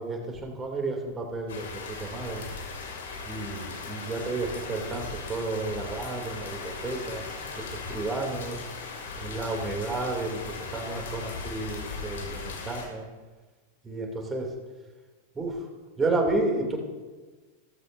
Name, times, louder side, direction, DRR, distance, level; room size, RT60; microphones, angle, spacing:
voice 1, 0.0-2.4 3.2-7.2 7.5-8.6 9.1-10.4 10.7-13.0 13.8-14.5 15.3-15.7 16.0-16.8, right 2 dB, 15° right, 1 dB, 2.8 m, -31 dB
sound 1, 1.5-12.9, left 4 dB, 60° left, 2.4 m, -38 dB
17.0 x 14.0 x 2.7 m, 1.3 s
figure-of-eight pair, 90°, 0 cm